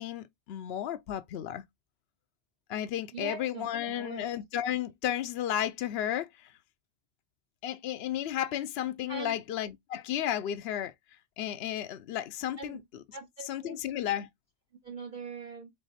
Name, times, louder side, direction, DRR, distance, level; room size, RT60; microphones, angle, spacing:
voice 1, 0.0-1.6 2.7-6.3 7.6-10.9 11.4-12.8 13.5-14.3, left 11 dB, 70° left, 0.8 m, -33 dB
voice 2, 3.1-4.3 9.1-9.4 12.6-12.8 13.1-13.8 14.8-15.7, right 5 dB, 50° right, 0.9 m, -42 dB
3.9 x 3.4 x 4.0 m
omnidirectional pair, 1.1 m